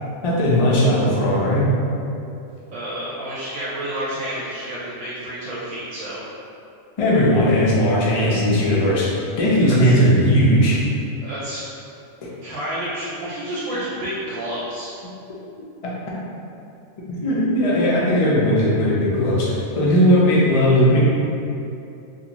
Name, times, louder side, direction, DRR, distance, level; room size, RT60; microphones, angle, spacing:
voice 1, 0.2-1.7 7.0-10.9 17.1-21.0, equal, 55° left, -6 dB, 0.4 m, -17 dB
voice 2, 2.7-6.2 9.7-9.9 11.2-11.6 12.4-14.9, right 1 dB, 75° right, -8 dB, 1.0 m, -30 dB
2.6 x 2.5 x 2.9 m, 2.7 s
omnidirectional pair, 1.3 m